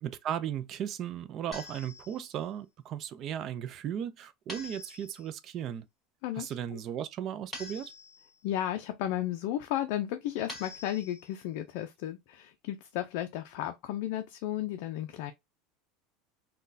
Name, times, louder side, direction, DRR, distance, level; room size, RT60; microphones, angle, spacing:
voice 1, 0.0-5.8 6.4-7.9, right 9 dB, 40° right, 0.4 m, -36 dB
sound 1, 1.5-2.4 4.5-5.4 7.5-8.4 10.5-11.4, left 2 dB, ahead, 2.0 m, -46 dB
voice 2, 6.2-6.8 8.4-15.3, left 12 dB, 65° left, 0.4 m, -34 dB
3.7 x 2.2 x 2.6 m
supercardioid pair, 140°, 0 cm